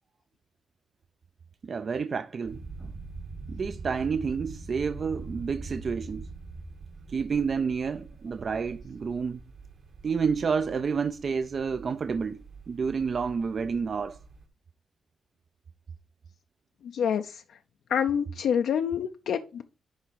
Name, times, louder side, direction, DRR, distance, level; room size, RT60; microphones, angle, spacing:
voice 1, 1.6-2.9 3.5-6.3 7.1-9.4 10.0-14.2, right 5 dB, 45° right, 0.3 m, -30 dB
sound 1, 2.4-14.4, right 3 dB, 70° right, 1.9 m, -43 dB
voice 2, 16.8-17.6 17.9-19.6, left 8 dB, 80° left, 0.5 m, -27 dB
10.5 x 3.6 x 4.6 m
cardioid pair, 120°, 0 cm